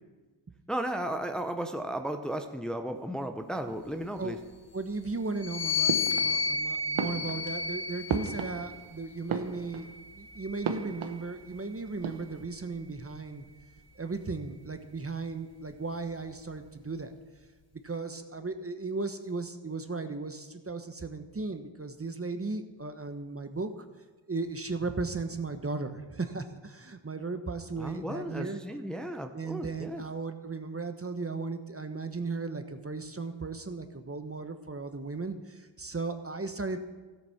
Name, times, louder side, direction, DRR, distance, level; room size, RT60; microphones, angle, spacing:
voice 1, 0.7-4.4 27.8-30.0, right 1 dB, ahead, 6 dB, 0.9 m, -35 dB
voice 2, 4.7-13.4 14.0-17.1 17.8-23.7 24.3-28.6 29.3-36.8, right 3 dB, 30° right, 8 dB, 1.0 m, -36 dB
sound 1, 5.4-9.0 9.8-11.4, left 5 dB, 50° left, 2.5 m, -32 dB
sound 2, 5.9-6.6 6.9-8.9 9.2-10.0 10.6-11.6 11.9-12.4, right 6 dB, 80° right, 1.1 m, -35 dB
13.0 x 8.1 x 5.8 m, 1.3 s
cardioid pair, 45°, 48 cm